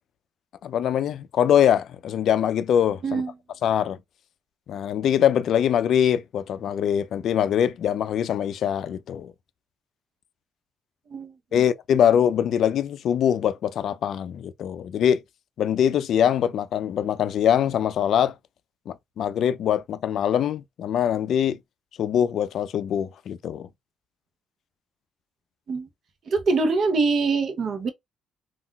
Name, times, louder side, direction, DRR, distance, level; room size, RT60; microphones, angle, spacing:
voice 1, 0.6-3.2 3.6-4.0 4.7-9.3 11.5-15.2 15.6-18.3 18.9-21.6 22.0-23.7, left 9 dB, 65° left, 0.4 m, -23 dB
voice 2, 11.1-11.6 25.7-25.9 26.2-27.9, right 4 dB, 55° right, 0.7 m, -24 dB
3.7 x 2.3 x 2.2 m
cardioid pair, 95°, 0 cm